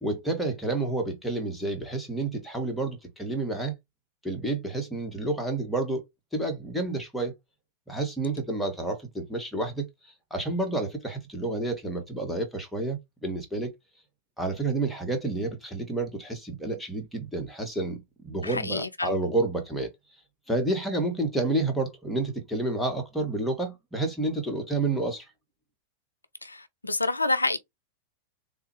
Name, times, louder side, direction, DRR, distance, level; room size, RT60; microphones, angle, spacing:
voice 1, 0.0-3.7 4.2-6.0 6.3-7.3 7.9-9.9 10.3-13.7 14.4-19.9 20.5-25.2, right 2 dB, 5° left, 1.5 m, -29 dB
voice 2, 18.4-19.1 26.4-26.6 26.8-27.6, left 2 dB, 90° left, 0.4 m, -27 dB
3.6 x 2.7 x 3.0 m
figure-of-eight pair, 95°, 0 cm